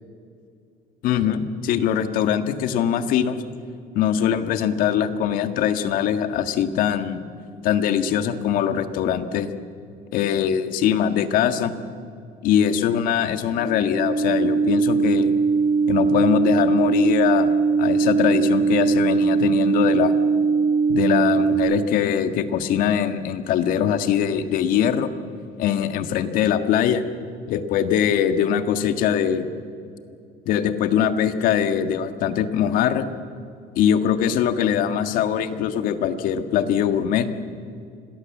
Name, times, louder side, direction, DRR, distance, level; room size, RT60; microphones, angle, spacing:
voice 1, 1.0-3.4 4.0-7.2 7.6-9.5 10.1-11.7 12.4-15.3 15.9-20.1 20.9-25.1 25.6-27.0 27.5-29.5 30.5-33.0 33.8-37.3, left 9 dB, 65° left, 9 dB, 1.7 m, -22 dB
sound 1, 13.5-21.6, right 5 dB, 35° left, 6.2 m, -20 dB
26.5 x 20.0 x 7.4 m, 2.4 s
cardioid pair, 135°, 15 cm